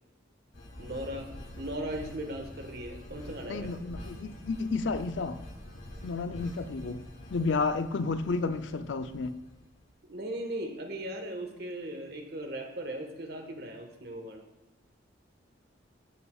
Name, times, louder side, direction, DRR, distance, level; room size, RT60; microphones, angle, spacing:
sound 1, 0.5-9.8, left 1 dB, 85° left, 2.8 m, -46 dB
voice 1, 0.8-1.3 1.6-3.7 10.0-14.5, right 1 dB, 55° right, 1.4 m, -38 dB
voice 2, 3.4-5.4 6.0-9.4, left 4 dB, 70° left, 0.5 m, -32 dB
14.0 x 6.9 x 2.4 m
head